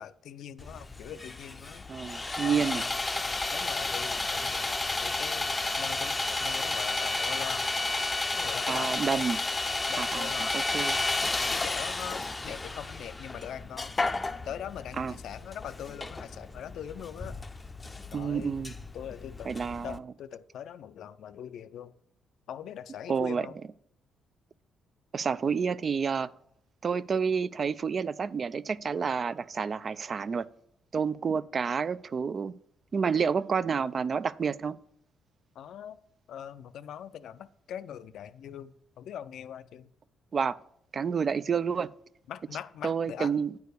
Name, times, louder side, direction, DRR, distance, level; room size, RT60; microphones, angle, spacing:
voice 1, 0.0-1.8 2.4-2.9 3.5-7.6 8.4-9.3 9.9-10.9 11.5-13.9 14.4-17.3 18.1-18.5 18.9-19.6 19.8-21.9 22.5-23.5 35.6-36.0 36.3-39.9 42.3-43.3, left 9 dB, 75° left, 0.4 m, -42 dB
Sawing, 0.6-20.0, left 2 dB, 20° left, 0.5 m, -32 dB
voice 2, 1.9-2.8 8.7-9.4 10.0-11.0 15.0-15.1 18.1-18.7 19.5-20.1 23.1-23.5 25.1-26.3 26.8-30.4 30.9-32.5 32.9-34.8 40.3-40.6 40.9-41.9 42.8-43.6, right 6 dB, 45° right, 0.3 m, -29 dB
9.4 x 4.7 x 6.7 m
cardioid pair, 90°, 0 cm